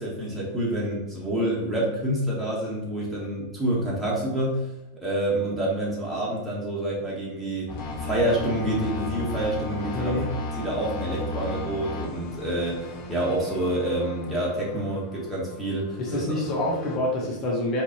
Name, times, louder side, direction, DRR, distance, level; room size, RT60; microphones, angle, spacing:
voice 1, 0.0-4.7 4.9-10.1 10.5-16.2, right 1 dB, 5° right, -6 dB, 1.4 m, -28 dB
sound 1, 7.7-17.0, left 2 dB, 50° left, 1.3 m, -35 dB
voice 2, 9.9-10.3 16.0-17.8, left 1 dB, 30° left, -2 dB, 0.9 m, -27 dB
4.4 x 3.3 x 2.9 m, 0.99 s
figure-of-eight pair, 90°, 0 cm